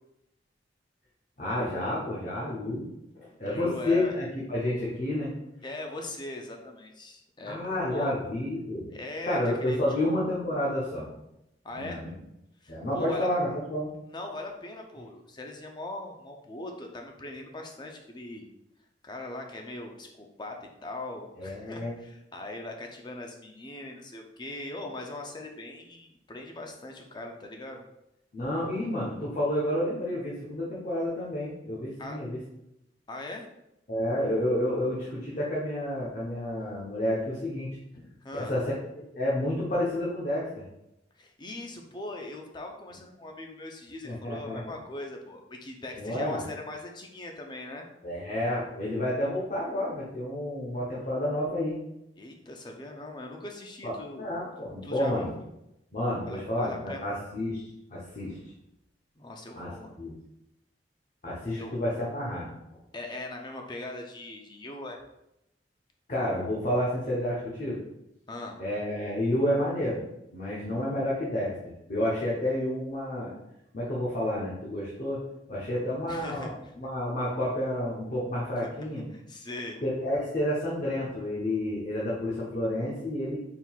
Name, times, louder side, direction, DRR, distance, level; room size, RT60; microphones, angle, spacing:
voice 1, 1.4-2.9 3.2-5.3 7.4-8.9 9.3-11.1 11.7-12.1 12.7-13.9 21.4-22.0 28.3-32.4 33.9-37.7 38.4-40.6 44.0-44.6 46.0-46.4 48.0-51.8 53.8-55.3 55.9-58.4 59.6-59.7 60.0-60.1 61.2-62.5 66.1-67.8 68.6-70.0 70.3-73.3 73.7-75.2 75.5-76.5 76.7-79.0 79.8-83.4, left 1 dB, 45° left, -6 dB, 0.9 m, -30 dB
voice 2, 3.4-4.1 5.6-8.1 8.9-10.2 11.6-12.0 12.6-13.3 14.1-18.5 19.0-27.8 32.0-32.2 33.1-33.5 37.9-38.5 41.2-47.9 52.2-54.3 54.8-55.5 56.3-57.0 59.2-60.0 61.5-61.7 62.9-65.0 68.3-68.6 76.1-76.7 78.6-78.7 79.1-79.8, left 2 dB, 25° left, 2 dB, 0.5 m, -40 dB
4.5 x 3.7 x 2.3 m, 0.85 s
head